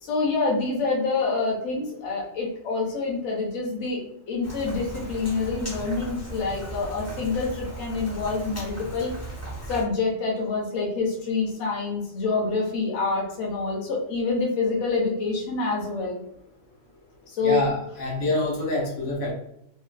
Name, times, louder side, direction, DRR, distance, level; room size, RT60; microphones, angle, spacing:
voice 1, 0.0-4.0 4.3-9.1 9.7-16.1 17.3-17.6, left 4 dB, 60° left, -3 dB, 1.0 m, -26 dB
Rain, 4.4-9.8, right 1 dB, 20° left, 0.4 m, -37 dB
voice 2, 17.4-19.3, left 1 dB, 85° left, -2 dB, 1.3 m, -26 dB
3.0 x 2.1 x 2.4 m, 0.75 s
omnidirectional pair, 1.4 m